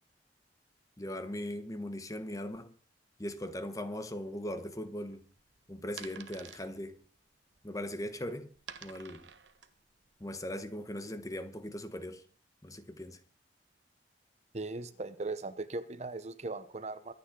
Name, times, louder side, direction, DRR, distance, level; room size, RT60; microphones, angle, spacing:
voice 1, 1.0-2.7 3.2-5.2 5.7-7.0 7.6-8.5 8.8-9.3 10.2-12.2 12.6-13.2, left 1 dB, 20° left, 1.1 m, -39 dB
sound 1, 4.2-10.6, right 7 dB, 85° right, 1.1 m, -52 dB
voice 2, 14.5-17.1, right 3 dB, 40° right, 0.9 m, -38 dB
24.0 x 9.2 x 3.8 m
head